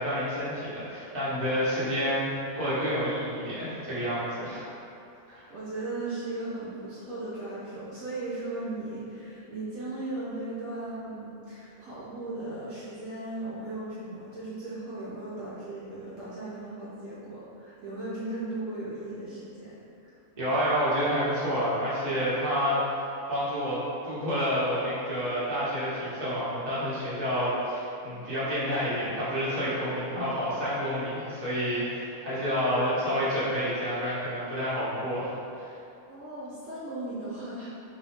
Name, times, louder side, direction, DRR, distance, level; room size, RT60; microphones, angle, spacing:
voice 1, 0.0-2.3 2.5-4.6 5.3-5.4 20.4-22.8 23.3-35.6, equal, 30° right, -11 dB, 1.2 m, -29 dB
voice 2, 5.5-20.1 36.1-37.7, right 2 dB, 70° right, -9 dB, 1.1 m, -37 dB
3.9 x 2.7 x 3.4 m, 2.7 s
omnidirectional pair, 1.5 m